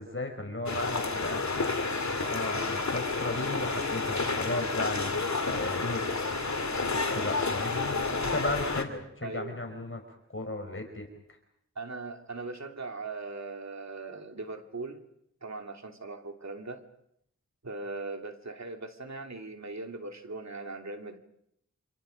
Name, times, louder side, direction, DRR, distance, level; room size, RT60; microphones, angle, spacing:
voice 1, 0.0-1.4 2.3-6.0 6.9-10.0 10.3-11.4, left 2 dB, 45° left, 4 dB, 4.9 m, -35 dB
sound 1, 0.7-8.8, left 3 dB, 70° left, 2.9 m, -30 dB
voice 2, 9.2-9.6 11.7-15.0 15.4-16.8 17.6-21.2, right 3 dB, 70° right, 4 dB, 2.8 m, -39 dB
28.0 x 27.0 x 5.2 m, 0.73 s
wide cardioid pair, 55°, 29 cm